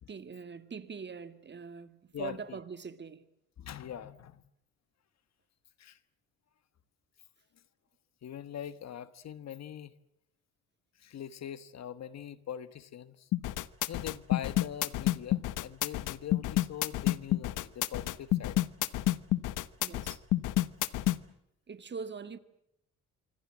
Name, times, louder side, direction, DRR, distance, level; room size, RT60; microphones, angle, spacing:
voice 1, 0.1-3.2 19.8-20.2 21.7-22.4, right 5 dB, 35° right, 1.9 m, -43 dB
voice 2, 2.1-2.6 3.6-4.4 5.8-6.0 8.2-9.9 11.0-13.3 13.9-18.6, left 10 dB, 60° left, 1.5 m, -42 dB
sound 1, 13.3-21.2, left 15 dB, 85° left, 1.1 m, -29 dB
26.0 x 25.5 x 7.5 m
cardioid pair, 90°, 30 cm